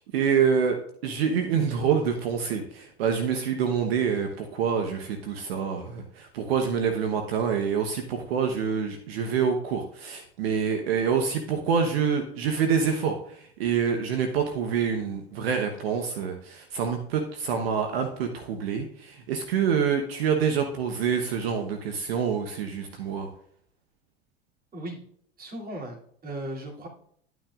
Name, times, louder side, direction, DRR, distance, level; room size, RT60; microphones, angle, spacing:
voice 1, 0.0-23.3, right 6 dB, 75° right, 5 dB, 1.1 m, -26 dB
voice 2, 25.4-26.9, right 1 dB, 30° right, -2 dB, 2.9 m, -37 dB
11.0 x 9.2 x 2.5 m, 0.64 s
hypercardioid pair, 85°, 31 cm